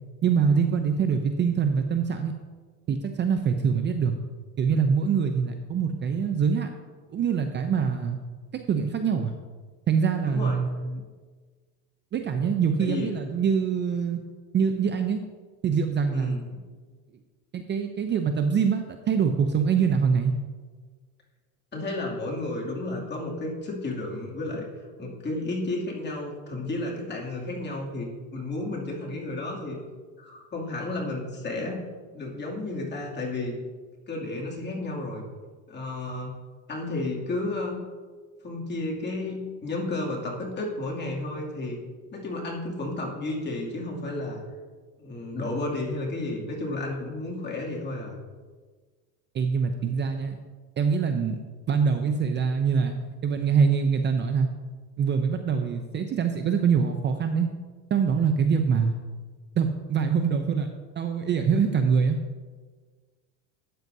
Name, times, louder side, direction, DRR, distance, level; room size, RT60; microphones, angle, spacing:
voice 1, 0.2-2.3 2.9-4.1 4.6-6.7 7.1-8.2 8.5-9.3 9.9-11.0 12.1-14.2 14.5-15.2 15.6-16.3 17.5-20.3 49.3-50.4 50.8-51.4 51.7-53.0 53.2-54.5 55.0-57.5 57.9-58.9 59.6-60.7 61.0-62.2, right 6 dB, 30° right, 6 dB, 0.6 m, -24 dB
voice 2, 10.2-10.6 12.8-13.1 16.1-16.4 21.7-24.7 25.0-29.8 30.2-31.8 32.1-33.6 34.1-35.2 35.7-36.3 36.7-37.8 38.4-41.8 42.1-44.4 45.0-48.2, left 2 dB, 25° left, -3 dB, 2.6 m, -32 dB
12.0 x 9.4 x 2.7 m, 1.4 s
supercardioid pair, 125°, 39 cm